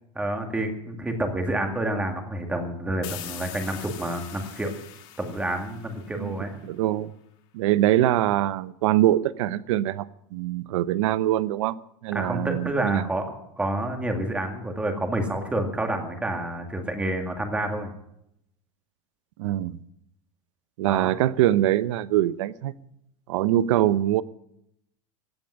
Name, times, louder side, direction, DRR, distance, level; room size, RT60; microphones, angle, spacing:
voice 1, 0.2-4.7 5.2-6.6 12.1-13.2 13.6-17.9 20.9-21.1, right 1 dB, 5° right, 5 dB, 2.0 m, -28 dB
sound 1, 3.0-6.6, left 12 dB, 45° left, 2.3 m, -42 dB
voice 2, 6.6-7.1 7.5-11.8 12.0-13.1 19.4-19.8 20.8-22.7 23.3-24.2, right 13 dB, 70° right, 17 dB, 0.8 m, -23 dB
16.0 x 8.8 x 10.0 m, 0.77 s
supercardioid pair, 170°, 17 cm